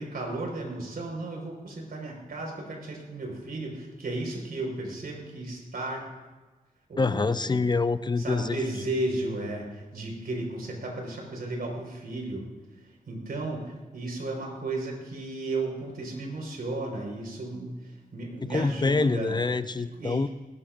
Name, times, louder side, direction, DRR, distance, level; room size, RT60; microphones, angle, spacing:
voice 1, 0.0-6.1 6.9-7.7 8.2-12.5 13.1-19.3 20.0-20.3, right 2 dB, 85° right, 0 dB, 4.6 m, -34 dB
voice 2, 7.0-8.6 18.4-20.3, left 3 dB, 30° left, 12 dB, 0.5 m, -26 dB
20.0 x 18.5 x 2.6 m, 1.2 s
wide cardioid pair, 115°, 15 cm